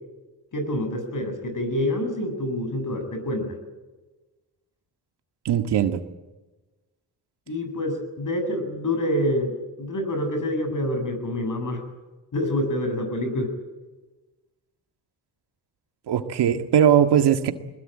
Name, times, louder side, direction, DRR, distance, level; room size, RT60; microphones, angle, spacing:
voice 1, 0.5-3.6 7.5-11.8 12.3-13.5, left 1 dB, 50° left, 7 dB, 8.0 m, -27 dB
voice 2, 5.5-6.0 16.1-17.5, right 9 dB, 75° right, 8 dB, 1.9 m, -19 dB
21.5 x 21.0 x 9.0 m, 1.2 s
cardioid pair, 75°, 41 cm